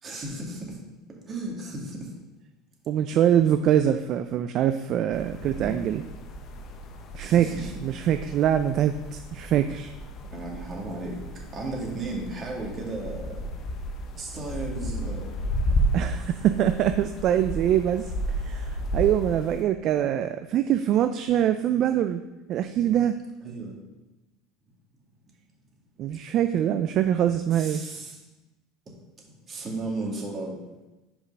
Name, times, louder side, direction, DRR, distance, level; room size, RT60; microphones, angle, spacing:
voice 1, 0.0-0.8 1.3-2.1 5.4-5.8 7.2-7.6 10.3-11.2 11.5-13.4 14.2-15.3 23.4-23.8 27.5-28.2 29.5-30.6, right 2 dB, 35° right, -1 dB, 2.3 m, -34 dB
voice 2, 2.9-6.0 7.1-9.9 15.9-18.1 18.4-22.2 22.5-23.2 26.0-27.8, right 10 dB, 50° right, 9 dB, 0.4 m, -24 dB
sound 1, 5.1-19.6, equal, 45° left, 0.9 m, -33 dB
6.0 x 5.0 x 5.4 m, 1.0 s
supercardioid pair, 105°, 0 cm